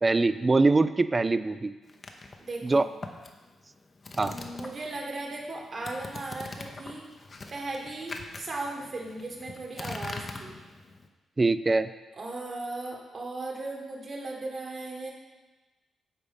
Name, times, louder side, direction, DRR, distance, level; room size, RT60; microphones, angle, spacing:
voice 1, 0.0-1.7 2.6-2.9 4.2-4.3 11.4-11.9, right 3 dB, 30° right, 13 dB, 0.4 m, -23 dB
sound 1, 1.9-5.0 5.3-11.1, left 3 dB, 45° left, 0.8 m, -42 dB
voice 2, 2.4-2.9 4.1-7.1 7.5-10.6 12.2-15.1, right 2 dB, 50° right, 0 dB, 1.7 m, -37 dB
8.2 x 4.0 x 5.3 m, 1.2 s
supercardioid pair, 60°, 0 cm